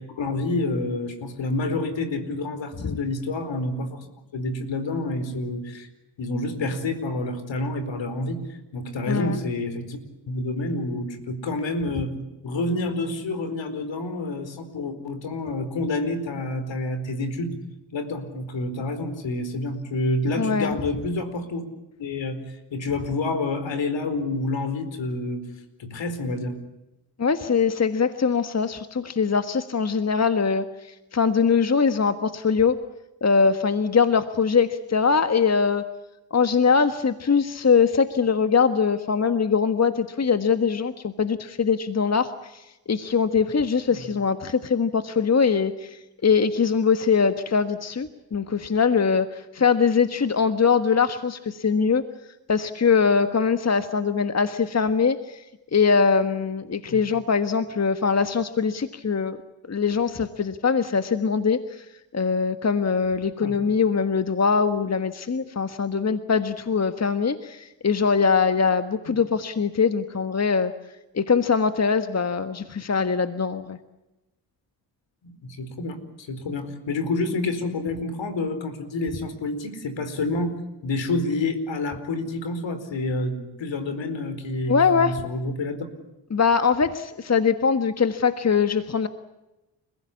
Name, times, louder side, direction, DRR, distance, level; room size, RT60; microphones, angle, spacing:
voice 1, 0.1-4.1 4.3-5.9 6.2-10.0 10.3-12.1 12.4-17.6 17.9-21.6 22.0-25.4 25.8-26.6 43.9-44.1 56.9-57.0 63.4-63.6 69.1-69.2 75.2-80.5 80.8-85.9, left 2 dB, 65° left, 10 dB, 4.7 m, -28 dB
voice 2, 9.1-9.4 20.4-20.7 27.2-32.8 33.2-35.8 36.3-52.0 52.5-55.4 55.7-59.4 59.7-61.8 62.1-70.7 71.1-73.8 84.7-85.1 86.3-89.1, left 5 dB, 30° left, 10 dB, 1.5 m, -22 dB
30.0 x 16.0 x 8.5 m, 0.99 s
supercardioid pair, 50°, 48 cm